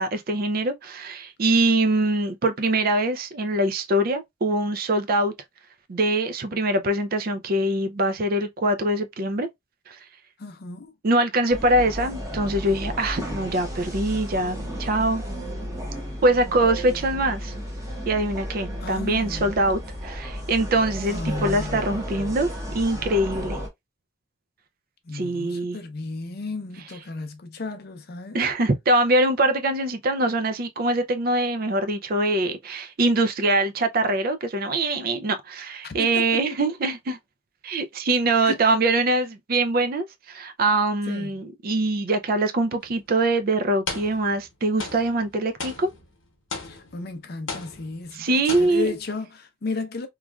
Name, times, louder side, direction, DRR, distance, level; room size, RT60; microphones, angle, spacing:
voice 1, 0.0-5.3 5.9-9.5 9.9-10.0 11.0-15.2 16.2-17.5 18.1-22.5 22.7-23.6 25.1-25.8 28.3-37.2 37.6-45.9 48.1-49.0, right 2 dB, 45° right, 0.4 m, -23 dB
voice 2, 10.4-10.9 18.8-19.5 21.1-22.0 25.1-28.4 35.8-36.3 38.4-38.6 41.1-41.3 46.7-50.1, left 3 dB, 50° left, 0.5 m, -34 dB
sound 1, 11.5-23.7, equal, 15° right, 0.9 m, -33 dB
sound 2, 42.8-43.0 43.9-44.5 44.8-47.1 47.5-48.2 48.5-49.1, left 4 dB, 70° left, 0.9 m, -36 dB
3.1 x 2.4 x 2.3 m
head